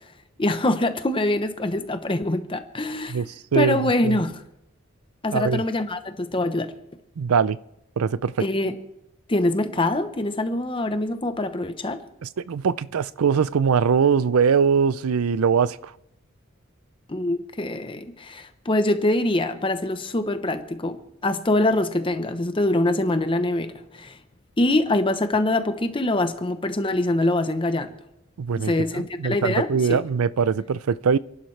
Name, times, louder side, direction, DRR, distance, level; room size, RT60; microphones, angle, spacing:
voice 1, 0.4-3.2 3.5-4.4 5.2-6.7 8.4-8.8 9.3-12.0 17.1-24.2 24.6-27.9 28.5-30.0, left 1 dB, 25° left, 0.8 m, -24 dB
voice 2, 3.1-3.8 4.0-4.2 5.3-5.6 7.2-7.6 8.0-8.4 12.5-15.8 28.4-31.2, right 6 dB, 90° right, 0.5 m, -22 dB
29.0 x 11.5 x 3.3 m
head